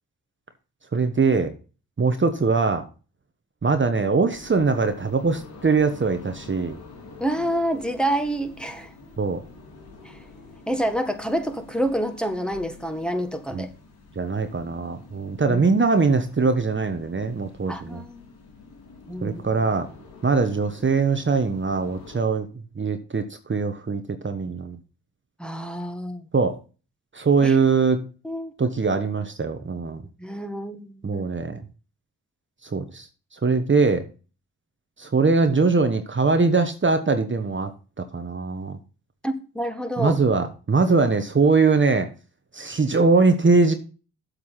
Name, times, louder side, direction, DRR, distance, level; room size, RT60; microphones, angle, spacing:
voice 1, 0.9-1.5 2.0-2.8 3.6-6.8 9.2-9.4 13.5-13.6 14.2-18.0 19.2-19.9 20.2-22.5 22.8-24.8 26.3-26.6 27.1-28.0 28.6-30.0 31.0-31.6 32.6-33.1 33.4-34.1 35.0-37.7 38.0-38.8 40.0-42.1 42.5-43.7, right 4 dB, 35° right, 1.2 m, -22 dB
sound 1, 4.3-22.2, left 3 dB, 85° left, 2.7 m, -47 dB
voice 2, 7.2-8.9 10.0-10.2 10.7-13.7 15.5-15.6 17.7-18.3 19.1-19.4 25.4-26.2 27.4-27.6 28.2-28.5 30.2-31.2 39.2-40.2, right 1 dB, ahead, 1.7 m, -28 dB
7.8 x 6.6 x 5.7 m
supercardioid pair, 50°, 36 cm